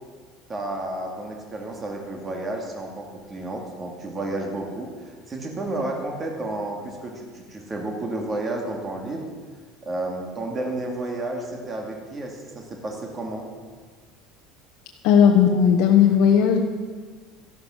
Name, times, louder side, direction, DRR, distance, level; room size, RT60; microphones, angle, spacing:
voice 1, 0.5-9.2 9.8-13.5, right 2 dB, 20° right, 1 dB, 2.1 m, -31 dB
voice 2, 15.0-16.6, left 8 dB, 60° left, 1 dB, 1.2 m, -16 dB
13.0 x 12.0 x 6.3 m, 1.5 s
cardioid pair, 165°, 0 cm